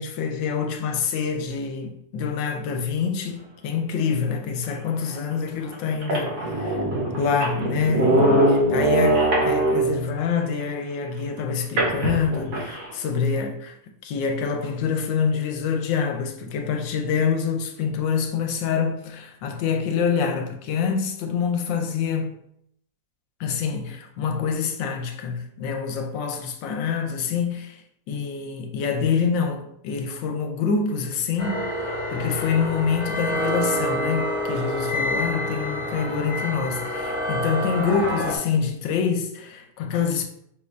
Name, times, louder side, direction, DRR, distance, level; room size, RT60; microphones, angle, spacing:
voice 1, 0.0-6.8 7.2-8.4 8.7-13.8 14.0-22.4 23.4-27.8 28.1-31.6 32.1-40.3, left 6 dB, 80° left, 1.3 m, -26 dB
sound 1, 5.1-5.2 5.7-5.8 6.0-10.1 11.8-12.9, right 2 dB, 60° right, 1.5 m, -22 dB
sound 2, 31.4-38.4, equal, 50° left, 1.3 m, -27 dB
5.3 x 2.5 x 3.2 m
omnidirectional pair, 2.0 m